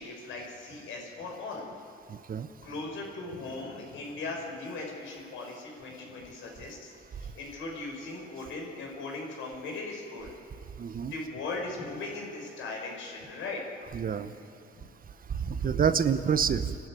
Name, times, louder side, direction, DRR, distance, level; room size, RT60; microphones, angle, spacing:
voice 1, 0.0-1.6 2.6-10.3 11.1-13.6, left 3 dB, 85° left, 0 dB, 5.8 m, -38 dB
voice 2, 2.1-2.5 10.8-11.1 13.9-14.3 15.3-16.7, right 7 dB, 45° right, 11 dB, 1.0 m, -27 dB
28.0 x 12.5 x 9.3 m, 2.6 s
cardioid pair, 90°, 20 cm